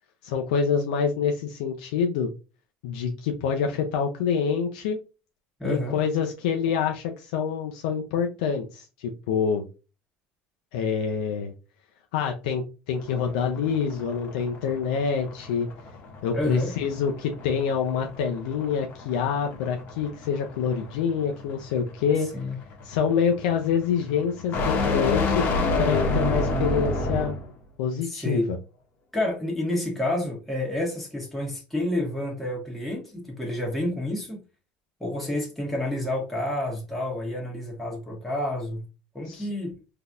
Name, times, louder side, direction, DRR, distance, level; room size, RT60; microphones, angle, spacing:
voice 1, 0.2-2.3 2.8-5.0 5.6-9.7 10.7-11.5 12.1-15.7 16.2-22.3 22.8-25.5 25.8-27.3 27.8-28.6 39.3-39.5, left 6 dB, 80° left, 0.5 m, -26 dB
voice 2, 5.6-6.0 16.3-16.7 22.3-22.6 28.1-28.5 29.1-34.4 35.0-38.8 39.1-39.7, left 1 dB, 5° left, 1.3 m, -29 dB
sound 1, 13.0-27.5, left 3 dB, 55° left, 1.0 m, -30 dB
3.8 x 2.7 x 2.3 m
supercardioid pair, 85°, 4 cm